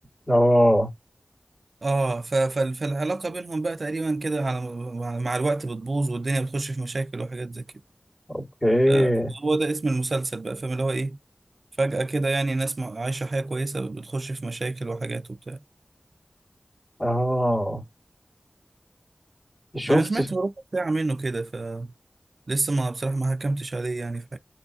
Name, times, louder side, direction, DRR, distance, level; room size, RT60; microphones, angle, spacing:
voice 1, 0.3-0.9 8.3-9.3 17.0-17.8 19.7-20.3, equal, 30° left, 2.0 m, -21 dB
voice 2, 1.8-7.6 8.9-11.2 11.8-15.6 19.8-21.9 22.5-24.4, right 2 dB, 75° right, 0.3 m, -27 dB
6.0 x 3.1 x 2.6 m
wide cardioid pair, 55°, 0 cm